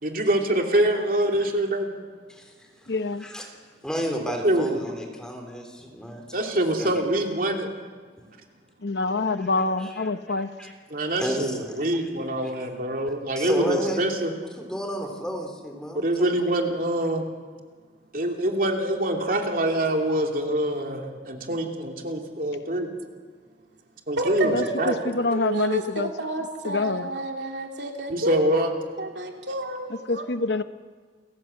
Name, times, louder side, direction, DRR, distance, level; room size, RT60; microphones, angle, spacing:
voice 1, 0.0-1.9 4.4-4.8 6.3-7.7 10.9-14.3 15.9-17.3 18.1-22.9 24.1-25.0 28.1-28.7, right 1 dB, 50° right, 2 dB, 2.7 m, -25 dB
voice 2, 2.9-3.2 8.8-10.5 24.5-26.1 26.7-27.1 30.1-30.6, left 3 dB, 70° left, 11 dB, 1.0 m, -26 dB
voice 3, 3.8-6.5 6.8-6.9 9.4-10.1 10.4-10.7 11.2-11.6 12.4-12.5 13.4-14.1 14.6-16.3, equal, 5° left, 3 dB, 3.5 m, -32 dB
voice 4, 24.2-24.8 25.1-30.3, right 2 dB, 75° right, 2 dB, 2.9 m, -30 dB
29.5 x 15.0 x 7.8 m, 1.5 s
head